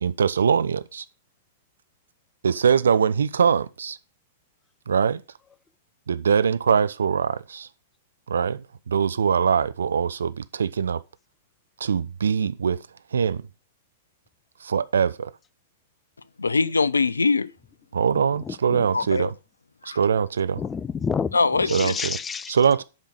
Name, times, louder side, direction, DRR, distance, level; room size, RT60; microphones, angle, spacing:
voice 1, 0.0-1.0 2.4-4.0 4.9-5.2 6.1-7.7 8.3-11.0 11.8-12.8 13.1-13.4 14.6-15.3 17.9-19.3 20.0-20.6 21.7-22.2 22.5-22.8, right 7 dB, 65° right, 0.5 m, -22 dB
voice 2, 16.4-17.5 18.9-19.3 19.8-20.0 21.3-22.0, left 4 dB, 75° left, 0.4 m, -22 dB
voice 3, 18.5-18.8 20.6-21.4 21.7-22.6, left 6 dB, 15° left, 0.4 m, -29 dB
8.1 x 5.5 x 5.4 m
figure-of-eight pair, 100°, 0 cm